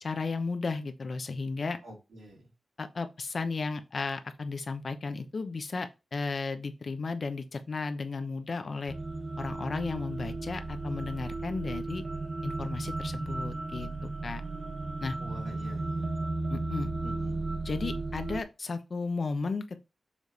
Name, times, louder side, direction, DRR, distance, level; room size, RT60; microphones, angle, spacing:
voice 1, 0.0-1.8 2.8-8.9 9.4-12.0 12.4-13.9 14.2-14.4 15.0-15.2 16.5-16.9 17.6-19.8, left 4 dB, 65° left, 0.9 m, -34 dB
voice 2, 1.8-2.5 15.2-16.1 17.0-17.5, right 1 dB, 85° right, 3.7 m, -46 dB
sound 1, 8.9-18.4, right 2 dB, 40° right, 1.1 m, -35 dB
7.1 x 3.3 x 4.1 m
cardioid pair, 55°, 0 cm